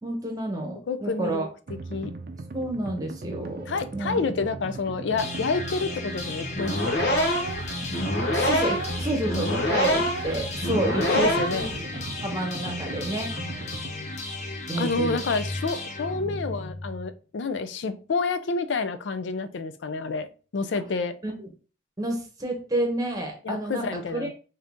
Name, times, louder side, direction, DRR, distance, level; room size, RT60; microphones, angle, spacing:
voice 1, 0.0-1.4 2.5-4.4 8.3-11.7 12.2-13.3 14.7-15.2 21.2-21.5 22.0-23.9 24.1-24.3, right 1 dB, 20° right, 0.9 m, -30 dB
voice 2, 0.9-2.1 3.7-7.0 11.1-11.7 14.8-21.2 23.4-24.3, left 4 dB, 80° left, 0.4 m, -29 dB
sound 1, 1.7-13.9, right 3 dB, 50° right, 0.4 m, -38 dB
sound 2, 5.2-17.1, left 2 dB, 40° left, 0.7 m, -35 dB
sound 3, 6.5-11.7, equal, 65° left, 1.1 m, -25 dB
3.8 x 2.7 x 3.5 m
head